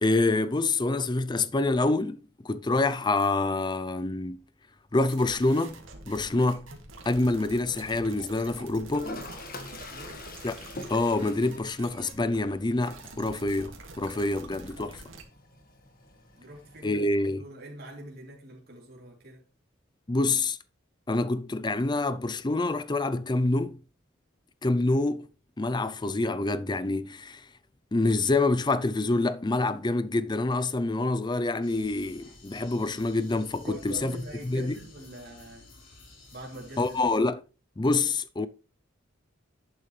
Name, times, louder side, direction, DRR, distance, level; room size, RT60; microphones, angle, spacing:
voice 1, 0.0-4.4 4.9-6.7 7.1-9.2 10.4-10.5 10.9-15.0 16.8-17.4 20.1-20.6 21.1-23.8 24.6-25.3 25.6-27.5 27.9-34.2 34.4-34.7 36.8-37.4 37.8-38.5, left 2 dB, 20° left, 0.5 m, -26 dB
sound 1, 5.1-15.2, right 3 dB, 85° right, 2.2 m, -46 dB
Toilet flush, 8.9-16.9, left 2 dB, 45° left, 1.7 m, -45 dB
voice 2, 9.7-10.3 16.3-17.0 17.4-19.4 33.6-35.7 36.3-37.0, right 1 dB, 50° right, 3.1 m, -44 dB
sound 2, 31.6-37.2, left 2 dB, 70° left, 4.6 m, -52 dB
11.0 x 8.7 x 3.3 m
head